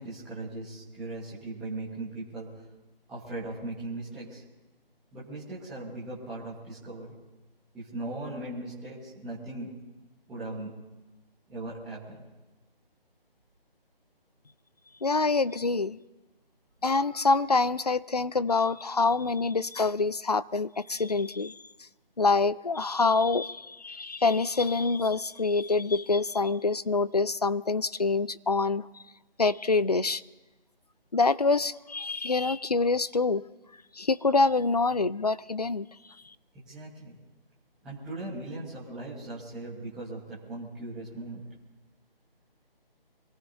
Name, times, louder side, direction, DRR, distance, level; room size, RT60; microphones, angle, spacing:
voice 1, 0.0-2.5 3.1-4.4 5.1-7.1 7.7-9.7 10.3-10.7 11.5-12.2 36.5-37.1 37.8-41.5, right 2 dB, ahead, 1.3 m, -38 dB
voice 2, 15.0-16.0 16.8-21.9 22.2-29.0 29.4-30.2 31.1-33.5 33.9-35.9 36.2-36.3, left 3 dB, 45° left, 0.4 m, -26 dB
26.0 x 17.5 x 2.7 m
figure-of-eight pair, 170°, 29 cm